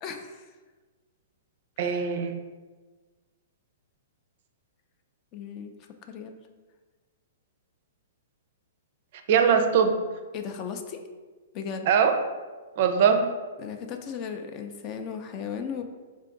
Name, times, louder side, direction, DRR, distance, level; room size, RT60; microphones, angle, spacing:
voice 1, 0.0-0.5 1.8-2.2 5.3-5.7 6.1-6.4 10.3-11.0 11.5-11.9 13.6-15.8, left 6 dB, 35° left, 6 dB, 0.4 m, -36 dB
voice 2, 1.8-2.4 9.3-9.9 11.9-12.1 12.8-13.3, right 7 dB, 55° right, 6 dB, 0.4 m, -21 dB
3.8 x 2.5 x 3.7 m, 1.3 s
hypercardioid pair, 125°, 0 cm